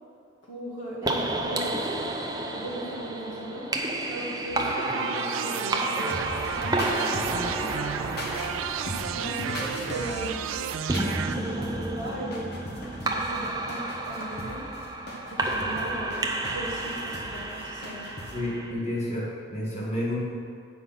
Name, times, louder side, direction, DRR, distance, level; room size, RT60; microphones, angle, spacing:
voice 1, 0.4-2.1 2.5-7.7 9.1-10.4 11.3-12.5 12.9-14.7 15.3-18.1, right 1 dB, 70° left, -5 dB, 1.6 m, -38 dB
sound 1, 1.0-18.7, right 2 dB, 20° right, 0.5 m, -31 dB
sound 2, 4.5-11.3, right 8 dB, 85° right, 0.3 m, -33 dB
sound 3, 6.1-18.4, left 1 dB, 50° left, 1.2 m, -39 dB
voice 2, 18.3-20.2, left 1 dB, 35° left, -7 dB, 1.8 m, -30 dB
8.1 x 5.2 x 5.8 m, 2.2 s
head